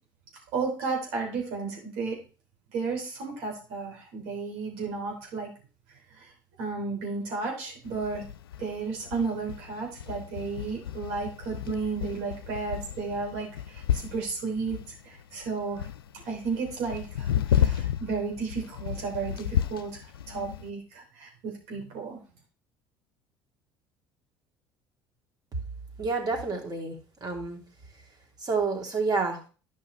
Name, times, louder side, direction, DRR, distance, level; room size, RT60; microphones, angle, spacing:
voice 1, 0.5-2.2 2.7-5.5 6.2-6.3 6.6-8.2 8.6-14.8 15.1-15.9 16.3-20.0 20.3-22.2, right 4 dB, 70° right, -1 dB, 3.5 m, -33 dB
sound 1, 7.8-20.7, left 10 dB, 90° left, 0.4 m, -32 dB
voice 2, 26.0-27.6 28.4-29.4, right 4 dB, 35° right, 1 dB, 2.7 m, -29 dB
11.5 x 5.6 x 3.3 m, 0.36 s
hypercardioid pair, 65°, 12 cm